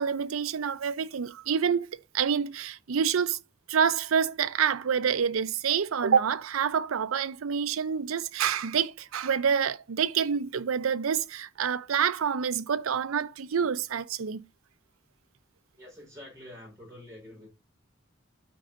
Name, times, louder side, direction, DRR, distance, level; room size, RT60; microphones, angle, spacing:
voice 1, 0.0-1.9 2.1-3.4 3.7-14.5, right 7 dB, 80° right, 0.5 m, -27 dB
voice 2, 15.8-17.5, left 1 dB, 15° right, 3.8 m, -47 dB
12.5 x 4.8 x 2.5 m
head